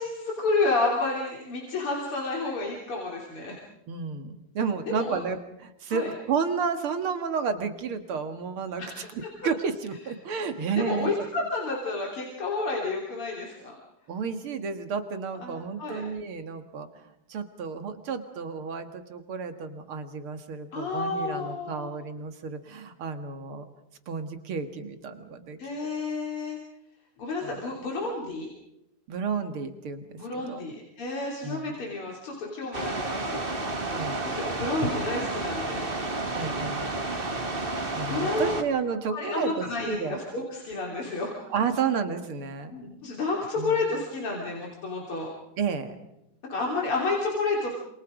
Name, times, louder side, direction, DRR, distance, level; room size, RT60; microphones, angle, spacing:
voice 1, 0.0-3.6 4.9-5.2 5.9-6.1 8.8-9.3 10.8-13.8 15.4-16.0 20.7-22.0 25.6-26.6 27.2-28.5 30.2-33.5 34.2-35.8 38.0-38.5 39.1-41.3 42.7-45.3 46.5-47.7, left 3 dB, 80° left, -2 dB, 4.1 m, -30 dB
voice 2, 3.9-8.8 9.1-11.1 14.1-16.9 17.3-23.6 24.1-26.0 27.4-27.5 29.1-30.6 31.4-31.8 33.9-34.3 36.3-36.9 37.9-40.2 41.5-42.7 43.6-43.8 45.6-46.0, right 5 dB, 75° right, 8 dB, 2.7 m, -31 dB
sound 1, 32.7-38.6, right 2 dB, 25° right, 2.0 m, -31 dB
27.5 x 27.5 x 5.1 m, 0.84 s
omnidirectional pair, 2.4 m